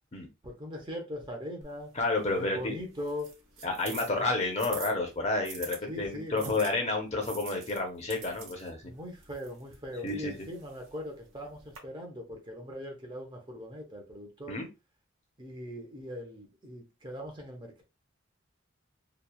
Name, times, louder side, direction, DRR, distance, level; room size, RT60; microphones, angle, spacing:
voice 1, 0.4-1.9 2.4-3.3 4.1-4.3 5.9-6.6 8.8-14.6 15.4-17.8, left 1 dB, 25° right, 0.6 m, -40 dB
sound 1, 1.6-5.8 6.4-11.8, right 5 dB, 85° right, 0.9 m, -47 dB
voice 2, 2.0-2.8 3.6-8.8 10.0-10.3 14.5-14.7, left 2 dB, 35° left, 0.7 m, -30 dB
2.9 x 2.3 x 2.2 m
head